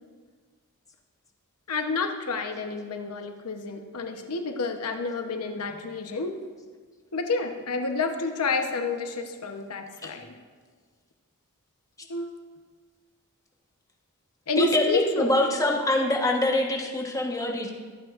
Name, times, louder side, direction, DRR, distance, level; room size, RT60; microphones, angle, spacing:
voice 1, 1.7-6.3 7.1-10.3 12.1-12.3 14.5-15.3, left 4 dB, 80° left, 5 dB, 0.9 m, -29 dB
voice 2, 14.6-17.7, left 1 dB, 15° left, 0 dB, 1.1 m, -24 dB
22.5 x 8.7 x 2.5 m, 1.5 s
head